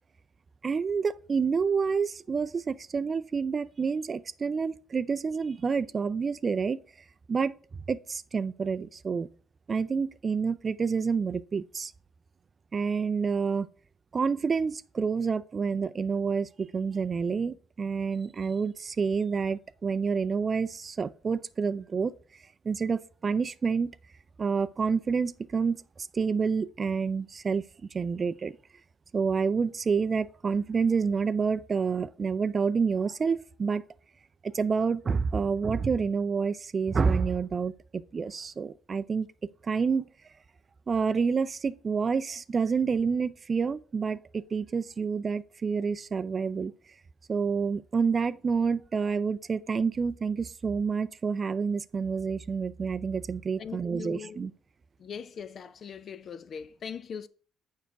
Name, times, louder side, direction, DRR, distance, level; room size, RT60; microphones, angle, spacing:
voice 1, 0.6-6.8 7.3-7.5 7.9-9.3 9.7-11.9 12.7-13.7 14.1-22.1 22.6-23.9 24.4-25.8 26.1-27.6 27.9-28.6 29.1-33.8 34.4-39.3 39.6-40.1 40.9-46.7 47.3-54.5, right 5 dB, 35° right, 0.4 m, -28 dB
voice 2, 53.6-54.4 55.0-57.3, left 6 dB, 50° left, 0.5 m, -40 dB
7.1 x 5.6 x 4.7 m
cardioid pair, 100°, 0 cm